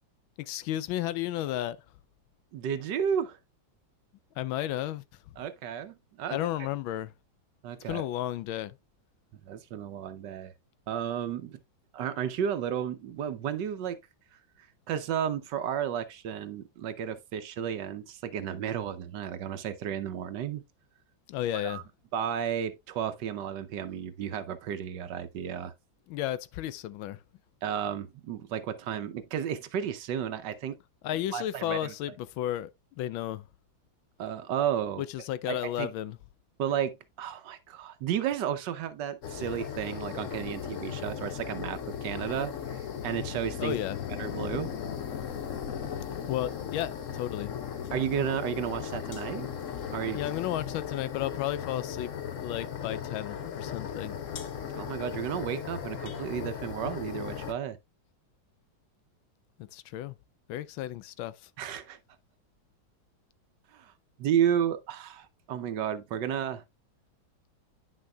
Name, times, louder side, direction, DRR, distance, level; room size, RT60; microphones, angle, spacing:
voice 1, 0.4-1.8 4.4-5.0 6.3-7.1 7.9-8.7 21.3-21.8 26.1-27.2 31.0-32.7 33.0-33.4 35.0-36.2 43.6-44.0 46.3-47.5 50.1-52.1 52.4-54.2 59.7-60.1 60.5-61.3, left 13 dB, 85° left, 1.4 m, -33 dB
voice 2, 2.5-3.4 5.4-6.4 7.6-8.0 9.5-10.5 10.9-11.6 11.9-14.0 14.9-20.6 21.5-21.8 22.1-25.7 27.6-30.8 31.3-31.9 34.2-35.0 35.5-35.9 36.6-43.8 44.2-44.7 47.9-49.5 49.9-50.2 54.7-57.8 61.6-62.0 63.7-63.9 64.2-66.6, right 9 dB, 70° right, 1.3 m, -32 dB
sound 1, 39.2-57.5, left 8 dB, 55° left, 0.9 m, -37 dB
9.6 x 6.2 x 2.2 m
omnidirectional pair, 2.2 m